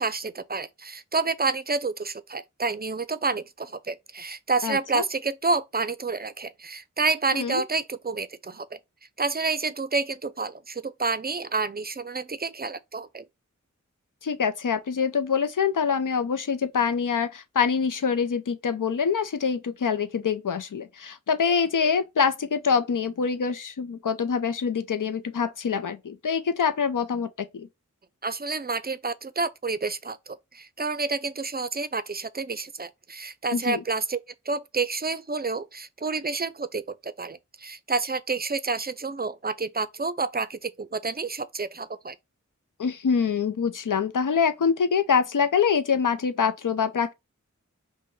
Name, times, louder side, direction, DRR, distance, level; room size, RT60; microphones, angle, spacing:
voice 1, 0.0-8.8 9.2-13.2 28.2-34.2 34.5-42.1, right 4 dB, 30° right, 0.4 m, -29 dB
voice 2, 4.6-5.0 7.3-7.6 14.2-27.7 33.5-33.8 42.8-47.1, left 6 dB, 90° left, 0.5 m, -25 dB
5.4 x 2.1 x 3.1 m
wide cardioid pair, 45°, 31 cm